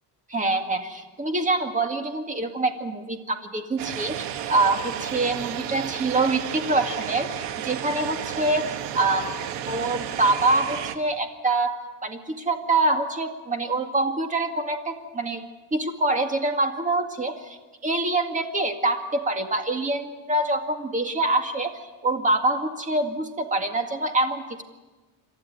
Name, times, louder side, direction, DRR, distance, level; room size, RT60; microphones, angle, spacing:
voice 1, 0.3-9.3 9.6-15.4 15.7-17.6 17.8-21.7 22.0-24.4, right 2 dB, 20° right, 6 dB, 2.0 m, -25 dB
sound 1, 3.8-11.0, right 10 dB, 85° right, 1.5 m, -32 dB
28.0 x 12.5 x 9.6 m, 1.2 s
cardioid pair, 150°, 41 cm